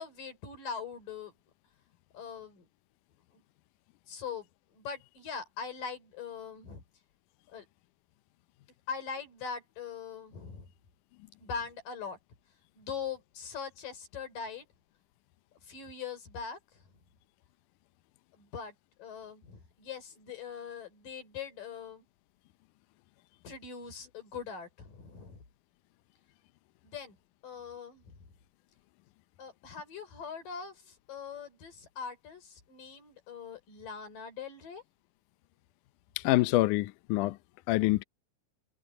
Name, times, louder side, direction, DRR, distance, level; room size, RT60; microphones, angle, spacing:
voice 1, 0.0-1.3 2.1-2.7 3.3-3.4 4.1-4.5 4.7-6.8 7.5-7.7 8.9-10.7 11.4-12.2 12.7-14.7 15.6-16.6 18.3-18.7 19.0-22.0 23.4-25.4 26.8-27.2 27.4-28.2 29.4-34.8, left 6 dB, 60° left, 6.1 m, -41 dB
voice 2, 36.2-37.4 37.7-38.0, left 18 dB, 80° left, 1.8 m, -26 dB
omnidirectional pair, 4.4 m